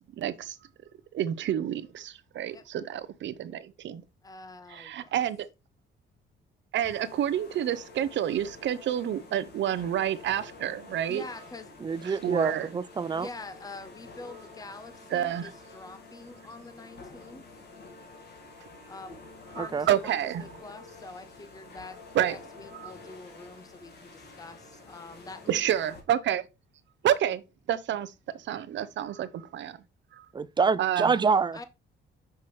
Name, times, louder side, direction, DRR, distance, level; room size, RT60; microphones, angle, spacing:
voice 1, 0.2-0.6 1.1-4.0 4.7-5.5 6.7-11.2 12.0-12.7 15.1-15.5 19.6-20.5 22.1-22.4 22.7-22.9 25.5-26.5 27.0-27.4 27.7-29.8 30.1-30.3 30.8-31.2, right 10 dB, 65° right, 0.7 m, -29 dB
voice 2, 4.2-5.1 11.1-11.7 13.1-17.4 18.9-19.1 19.5-25.6 31.5-31.6, left 3 dB, 20° left, 0.8 m, -45 dB
sound 1, 6.8-26.0, left 3 dB, 55° left, 1.8 m, -49 dB
voice 3, 11.8-13.3 19.6-19.9 30.3-31.6, right 5 dB, 20° right, 0.4 m, -26 dB
5.8 x 5.7 x 3.2 m
cardioid pair, 90°, 20 cm